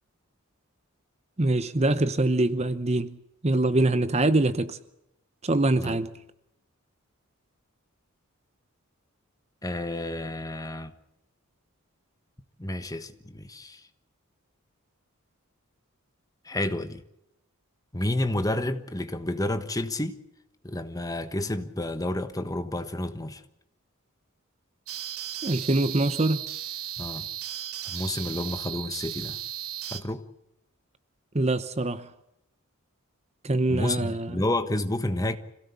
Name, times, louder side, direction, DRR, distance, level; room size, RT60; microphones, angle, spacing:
voice 1, 1.4-3.2 3.4-4.8 5.4-6.1 25.4-26.4 31.3-32.1 33.4-34.4, right 2 dB, 30° right, 0.8 m, -24 dB
voice 2, 9.6-10.9 12.6-13.8 16.4-17.0 17.9-20.2 20.6-23.4 27.0-27.3 27.8-29.4 29.9-30.2 33.7-35.4, left 1 dB, 15° left, 1.2 m, -30 dB
sound 1, 24.9-30.0, right 11 dB, 80° right, 1.7 m, -36 dB
26.0 x 17.0 x 8.3 m
head